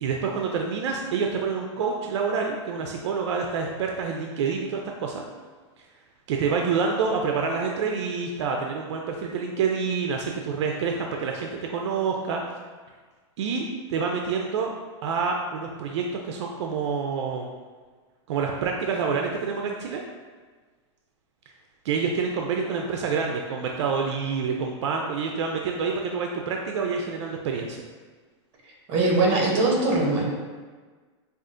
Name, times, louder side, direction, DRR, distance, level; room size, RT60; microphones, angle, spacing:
voice 1, 0.0-5.2 5.8-5.9 6.3-12.6 13.4-14.7 15.0-17.5 18.3-20.0 21.8-27.9, right 5 dB, 70° right, 1 dB, 0.4 m, -27 dB
voice 2, 28.9-30.2, right 2 dB, 30° right, -1 dB, 0.9 m, -21 dB
4.7 x 2.4 x 2.5 m, 1.4 s
supercardioid pair, 165°, 15 cm